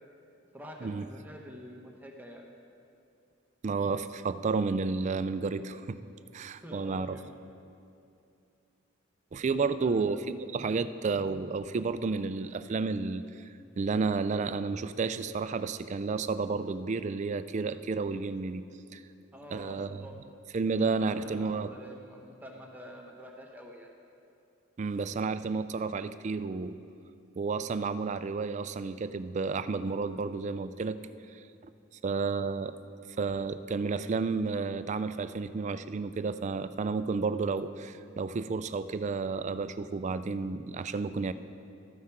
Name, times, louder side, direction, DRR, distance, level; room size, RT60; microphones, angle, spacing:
voice 1, 0.5-2.4 6.6-7.3 9.8-10.2 19.3-20.2 20.7-23.9, equal, 10° right, 0 dB, 0.9 m, -47 dB
voice 2, 3.6-6.0 6.3-7.2 9.3-13.5 13.8-18.6 18.9-19.0 19.5-20.0 20.5-21.7 24.8-26.8 27.4-31.0 31.3-31.4 32.0-32.8 33.2-41.3, right 4 dB, 35° right, 12 dB, 0.3 m, -31 dB
13.0 x 9.4 x 4.6 m, 2.5 s
head